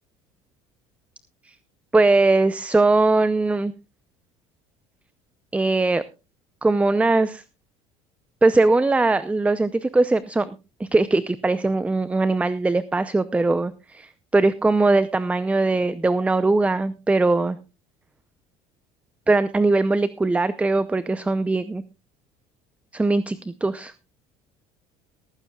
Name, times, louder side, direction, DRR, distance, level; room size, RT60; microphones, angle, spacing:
voice 1, 1.9-3.7 5.5-6.0 6.6-7.4 8.4-17.6 19.3-21.8 22.9-23.9, right 2 dB, 10° right, 14 dB, 0.6 m, -20 dB
16.5 x 14.5 x 2.4 m, 0.29 s
supercardioid pair, 110°, 14 cm